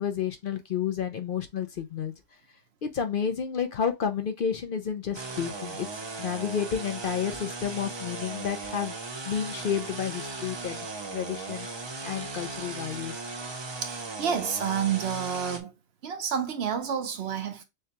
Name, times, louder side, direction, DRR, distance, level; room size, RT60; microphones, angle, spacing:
voice 1, 0.0-2.1 2.8-9.0 9.2-11.7 12.0-13.2, left 7 dB, 55° left, 0.7 m, -31 dB
sound 1, 5.1-15.6, right 3 dB, 30° right, 0.5 m, -37 dB
voice 2, 13.8-15.7 16.0-17.6, right 7 dB, 65° right, 0.9 m, -29 dB
6.5 x 2.3 x 2.9 m
omnidirectional pair, 1.2 m